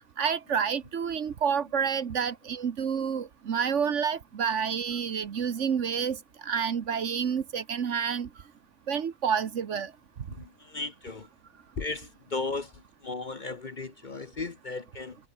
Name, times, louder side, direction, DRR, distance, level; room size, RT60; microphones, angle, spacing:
voice 1, 0.2-8.3 8.9-9.9, right 7 dB, 60° right, 1.3 m, -29 dB
voice 2, 10.4-11.3 11.8-12.7 13.0-15.2, left 3 dB, 35° left, 1.0 m, -35 dB
omnidirectional pair, 1.5 m